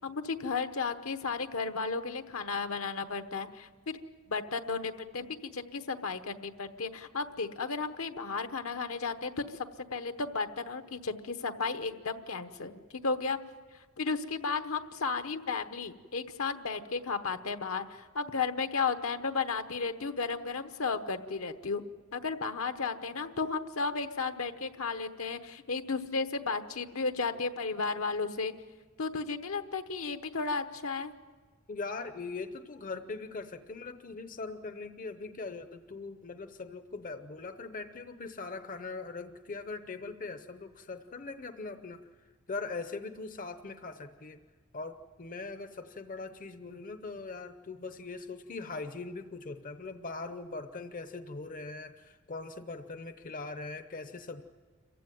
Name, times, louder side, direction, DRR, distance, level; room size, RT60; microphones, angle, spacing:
voice 1, 0.0-4.0 4.3-12.7 13.0-13.4 14.0-21.8 22.1-28.5 29.0-31.1, left 4 dB, 70° left, 8 dB, 1.1 m, -34 dB
voice 2, 31.7-42.0 42.5-44.4 44.7-54.4, left 3 dB, 40° left, 9 dB, 0.8 m, -41 dB
27.5 x 15.5 x 9.2 m, 1.5 s
head